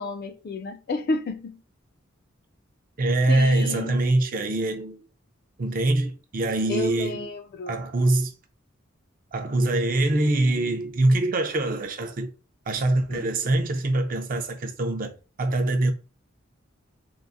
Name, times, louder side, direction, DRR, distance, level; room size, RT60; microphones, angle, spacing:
voice 1, 0.0-1.6 3.3-4.0 6.7-7.8 13.1-13.3, left 2 dB, 50° left, 0.4 m, -31 dB
voice 2, 3.0-5.0 5.6-7.3 7.7-8.3 9.3-12.3 12.7-15.1 15.4-15.9, right 2 dB, 45° right, 0.5 m, -24 dB
3.7 x 2.0 x 2.5 m
head